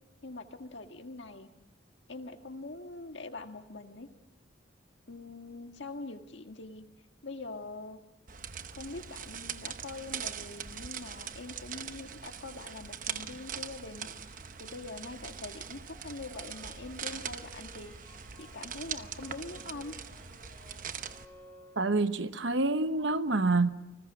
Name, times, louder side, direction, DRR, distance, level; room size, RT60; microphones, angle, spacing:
voice 1, 0.2-1.5 2.1-4.1 5.1-6.8 7.2-8.0 8.7-19.9, left 2 dB, 65° left, 1.8 m, -44 dB
sound 1, 8.3-21.2, right 8 dB, 45° right, 0.9 m, -42 dB
sound 2, 15.1-22.3, left 1 dB, 10° left, 4.6 m, -58 dB
voice 2, 21.8-23.7, right 3 dB, 70° right, 1.0 m, -27 dB
29.5 x 20.0 x 6.2 m
head